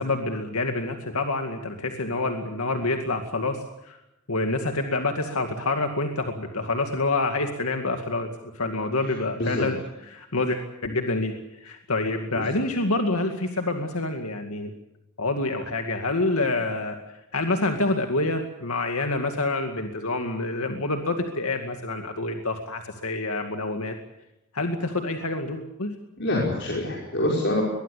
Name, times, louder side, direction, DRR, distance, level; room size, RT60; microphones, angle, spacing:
voice 1, 0.0-4.0 4.3-14.7 15.2-17.0 17.3-24.0 24.5-25.9, left 2 dB, 80° left, 5 dB, 2.2 m, -27 dB
voice 2, 26.2-27.6, left 1 dB, 50° left, -2 dB, 5.6 m, -25 dB
23.0 x 21.0 x 8.3 m, 0.91 s
head